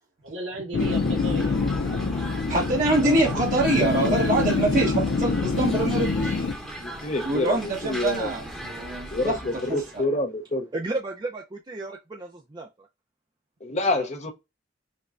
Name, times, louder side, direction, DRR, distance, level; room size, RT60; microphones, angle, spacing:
voice 1, 0.2-2.0 13.8-14.1, right 1 dB, 80° right, 1.0 m, -36 dB
sound 1, 0.7-6.5, left 4 dB, 75° left, 0.5 m, -25 dB
sound 2, 0.8-10.0, right 1 dB, ahead, 1.0 m, -38 dB
voice 2, 2.5-6.3 7.2-9.4 9.7-9.8, right 2 dB, 45° right, 1.2 m, -24 dB
voice 3, 6.8-8.3 9.1-10.6 13.6-14.3, left 2 dB, 40° left, 0.7 m, -27 dB
voice 4, 10.7-12.9, right 3 dB, 25° right, 0.5 m, -33 dB
5.3 x 2.2 x 2.5 m
head